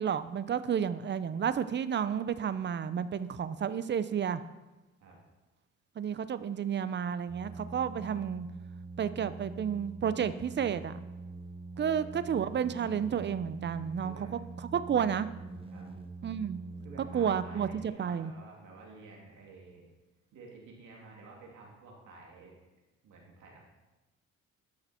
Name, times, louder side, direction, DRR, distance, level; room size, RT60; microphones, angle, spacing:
voice 1, 0.0-4.4 6.0-8.5 9.0-11.0 11.8-14.2 14.7-15.3 16.2-16.6 17.1-18.3, right 8 dB, 35° right, 13 dB, 0.6 m, -31 dB
sound 1, 7.3-17.9, right 3 dB, 20° right, 0.9 m, -44 dB
voice 2, 11.7-12.1 14.0-14.3 15.7-15.9 16.8-19.8 20.3-22.6 23.0-23.7, right 3 dB, 75° right, -2 dB, 2.8 m, -52 dB
11.5 x 6.5 x 4.4 m, 1.1 s
cardioid pair, 90°, 30 cm